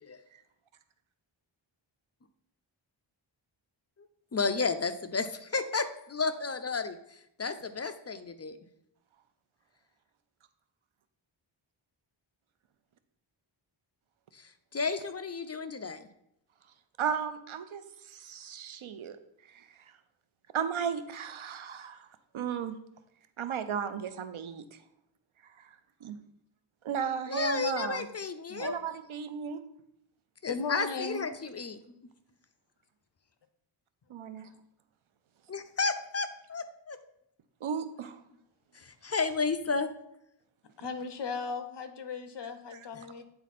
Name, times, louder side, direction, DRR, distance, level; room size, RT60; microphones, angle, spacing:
voice 1, 4.3-8.6 14.3-16.1 27.3-28.8 30.4-31.8 35.5-37.0 38.7-39.9 42.9-43.0, left 4 dB, 35° left, 9 dB, 0.5 m, -32 dB
voice 2, 17.0-17.8 18.1-19.2 20.5-22.0 22.3-22.7 23.4-24.6 26.0-26.2 26.8-28.1 28.6-29.6 34.1-34.5 37.6-38.2 42.7-42.8, right 7 dB, 80° right, 10 dB, 0.7 m, -34 dB
voice 3, 30.5-31.3 31.8-31.9 40.8-43.2, left 4 dB, 60° left, 10 dB, 0.8 m, -37 dB
8.8 x 4.1 x 4.2 m, 0.79 s
wide cardioid pair, 95°, 48 cm